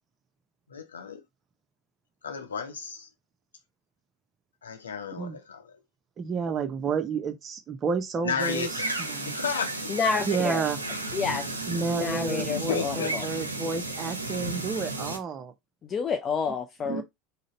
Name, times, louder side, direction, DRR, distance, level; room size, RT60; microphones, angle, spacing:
voice 1, 0.7-1.2 2.2-3.1 4.6-5.6 8.2-8.9 9.2-10.4 12.5-13.1, left 6 dB, 75° left, 0.7 m, -33 dB
voice 2, 6.2-9.4 10.3-10.8 11.7-15.5 16.8-17.0, right 5 dB, 30° right, 0.6 m, -31 dB
sound 1, 8.4-15.2, right 2 dB, 80° right, 0.6 m, -33 dB
voice 3, 9.9-10.6 11.1-11.5 11.9-13.3 15.8-17.0, left 5 dB, 30° left, 0.4 m, -29 dB
3.9 x 2.1 x 3.9 m
figure-of-eight pair, 75°, 0 cm